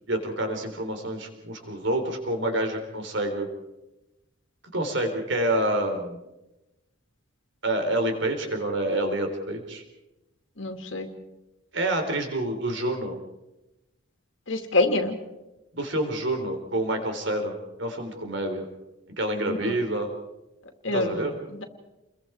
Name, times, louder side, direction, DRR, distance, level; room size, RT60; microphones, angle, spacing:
voice 1, 0.1-3.5 4.7-6.2 7.6-9.8 11.7-13.2 15.7-18.7 19.2-20.1 20.9-21.3, right 1 dB, 60° right, 4 dB, 4.0 m, -28 dB
voice 2, 10.6-11.1 14.5-15.2 19.5-19.8 20.8-21.3 21.6-21.7, left 2 dB, 65° left, 5 dB, 2.4 m, -26 dB
29.5 x 22.5 x 4.6 m, 0.98 s
head